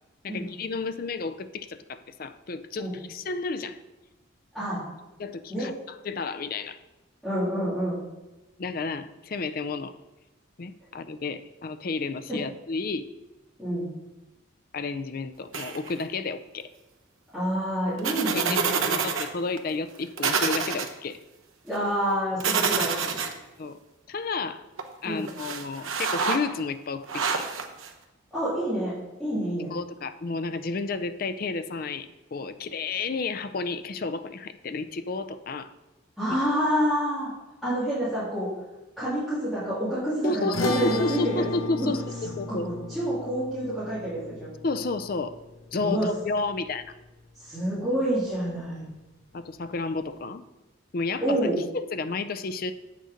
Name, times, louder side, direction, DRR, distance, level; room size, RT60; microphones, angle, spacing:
voice 1, 0.2-3.8 5.2-6.8 8.6-9.9 10.6-13.0 14.7-16.7 18.3-21.2 23.6-23.8 24.1-24.6 25.0-27.5 29.7-35.7 36.3-36.4 40.2-42.0 42.4-42.7 44.6-45.4 45.7-46.9 49.3-50.4 50.9-52.7, left 3 dB, 45° left, 11 dB, 0.5 m, -31 dB
voice 2, 7.2-8.0 12.3-12.4 13.6-13.9 17.3-18.9 21.6-23.1 25.0-25.2 28.3-28.9 29.2-29.7 36.2-37.3 37.6-38.5 39.0-41.4 41.8-41.9 42.5-44.5 45.7-46.1 47.4-48.9 51.2-51.6, equal, ahead, -14 dB, 2.9 m, -28 dB
sound 1, 15.5-16.0 18.0-19.3 19.6-19.7 20.2-20.9 22.4-23.3 24.8-24.9 25.3-26.4 27.1-27.9, right 5 dB, 80° right, 0.9 m, -27 dB
sound 2, 40.5-47.0, left 2 dB, 90° left, 1.0 m, -36 dB
8.0 x 6.5 x 5.1 m, 1.1 s
head